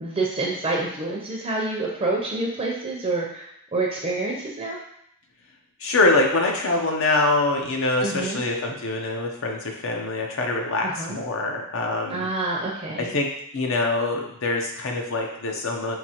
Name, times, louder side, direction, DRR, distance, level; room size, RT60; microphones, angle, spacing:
voice 1, 0.0-4.8 8.0-8.4 10.8-11.2 12.1-13.1, right 2 dB, 30° right, -2 dB, 0.6 m, -27 dB
voice 2, 5.8-12.3 13.0-13.3 13.5-16.0, left 2 dB, 65° left, 1 dB, 0.8 m, -24 dB
5.7 x 2.7 x 2.9 m, 0.73 s
head